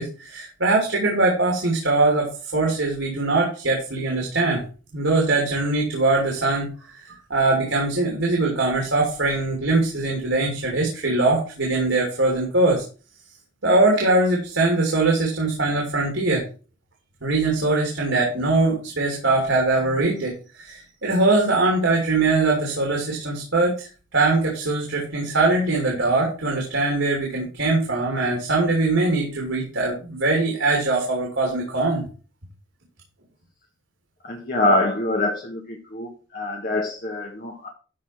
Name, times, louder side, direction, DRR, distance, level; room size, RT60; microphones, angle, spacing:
voice 1, 0.0-4.6 4.9-12.8 13.6-16.4 17.2-32.0, right 2 dB, 80° right, -1 dB, 3.0 m, -22 dB
voice 2, 34.2-37.7, left 2 dB, 45° left, 0 dB, 1.7 m, -25 dB
12.5 x 4.3 x 6.1 m, 0.36 s
head